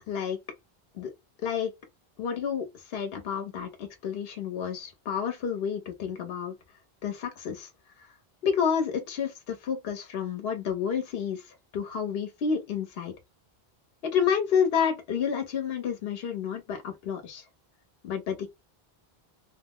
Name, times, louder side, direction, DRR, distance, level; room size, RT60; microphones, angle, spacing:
voice 1, 0.1-0.4 0.9-1.1 1.4-1.7 2.2-6.6 7.0-7.7 8.4-11.4 11.7-13.1 14.0-17.4 18.0-18.5, left 7 dB, 75° left, 1.0 m, -30 dB
2.8 x 2.0 x 3.6 m
omnidirectional pair, 1.0 m